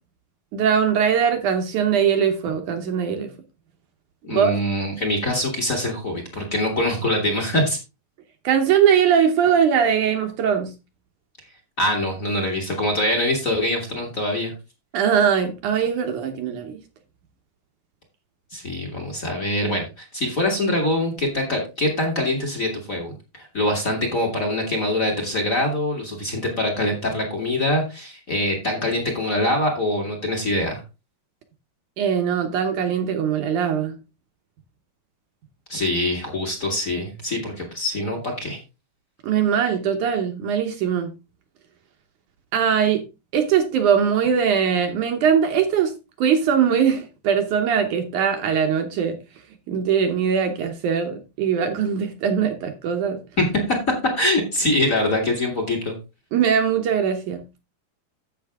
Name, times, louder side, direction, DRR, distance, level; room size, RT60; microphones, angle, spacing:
voice 1, 0.5-3.3 4.3-4.6 8.4-10.7 14.9-16.8 32.0-34.0 39.2-41.1 42.5-43.0 43.3-45.9 46.2-49.2 49.7-53.2 56.3-57.4, right 7 dB, 65° right, 2.2 m, -21 dB
voice 2, 4.2-7.8 11.8-14.5 18.5-30.8 35.7-38.6 53.4-53.8 54.2-56.0, left 1 dB, 30° left, 1.8 m, -24 dB
10.5 x 7.7 x 3.5 m
omnidirectional pair, 4.3 m